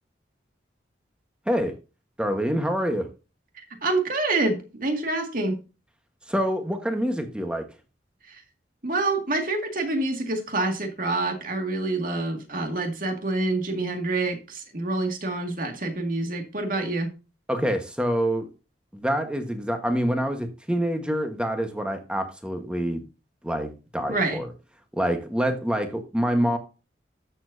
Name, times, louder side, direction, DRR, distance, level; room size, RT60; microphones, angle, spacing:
voice 1, 2.2-3.1 6.3-7.6 17.5-18.5 18.9-23.0 23.4-24.5 25.0-26.6, equal, 5° right, 1.3 m, -26 dB
voice 2, 3.8-5.6 8.2-8.4 8.8-17.1 24.1-24.4, right 2 dB, 50° right, 2.2 m, -27 dB
13.0 x 7.1 x 2.7 m
head